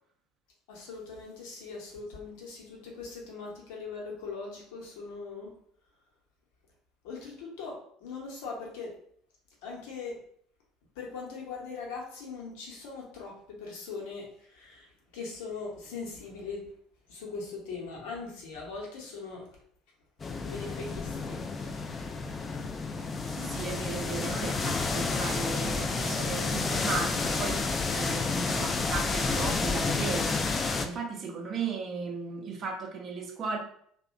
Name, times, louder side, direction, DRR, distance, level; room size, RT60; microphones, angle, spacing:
voice 1, 0.7-5.5 7.0-8.9 9.6-10.2 10.9-16.7 17.1-19.5 20.2-21.5, left 4 dB, 65° left, -2 dB, 0.8 m, -40 dB
sound 1, 20.2-30.9, left 4 dB, 30° left, 0.3 m, -30 dB
voice 2, 23.3-33.6, right 4 dB, 40° right, 3 dB, 0.5 m, -36 dB
2.7 x 2.1 x 2.5 m, 0.64 s
figure-of-eight pair, 60°, 0 cm